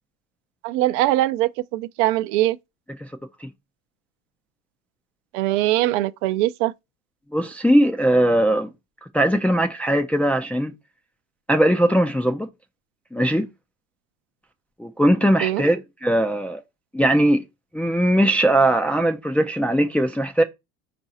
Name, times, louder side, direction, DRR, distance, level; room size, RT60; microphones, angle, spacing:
voice 1, 0.6-2.6 5.3-6.7 15.4-15.6, right 15 dB, 65° right, 0.5 m, -22 dB
voice 2, 7.3-8.7 9.1-10.7 11.5-12.5 13.1-13.5 14.8-16.6 16.9-17.4 17.7-20.4, right 1 dB, 5° left, 0.3 m, -19 dB
4.6 x 2.5 x 4.1 m
supercardioid pair, 110°, 38 cm